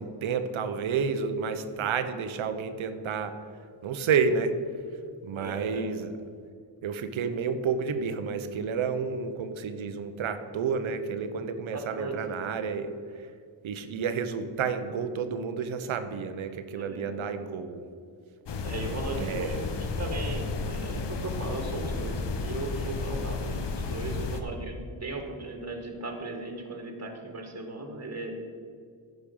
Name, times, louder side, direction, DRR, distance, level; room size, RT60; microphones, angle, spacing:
voice 1, 0.0-3.4 3.8-4.6 5.2-6.1 6.8-12.9 13.6-17.8 19.2-19.6, right 6 dB, 75° right, 10 dB, 0.8 m, -30 dB
voice 2, 5.4-5.9 11.7-12.2 16.7-17.2 18.6-28.4, right 2 dB, 30° right, 3 dB, 1.7 m, -37 dB
sound 1, 18.5-24.4, left 4 dB, 60° left, 1.0 m, -32 dB
10.0 x 5.4 x 5.4 m, 2.3 s
cardioid pair, 55°, 48 cm